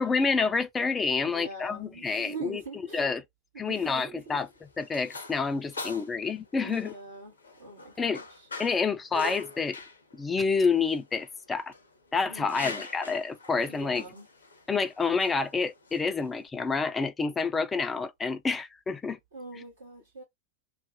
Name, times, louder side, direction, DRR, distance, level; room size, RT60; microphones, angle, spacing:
voice 1, 0.0-2.6 2.9-3.2 3.6-4.5 4.8-6.9 8.0-8.2 8.6-9.8 10.1-11.7 12.1-14.0 14.7-19.2, left 4 dB, 15° left, 0.3 m, -28 dB
voice 2, 1.2-3.2 3.5-4.4 5.6-6.0 6.6-8.5 12.3-12.8 13.7-14.3 19.3-20.2, right 3 dB, 70° right, 0.9 m, -44 dB
sound 1, 4.2-16.5, left 3 dB, 75° left, 0.5 m, -44 dB
2.5 x 2.0 x 2.7 m
figure-of-eight pair, 90°, 0 cm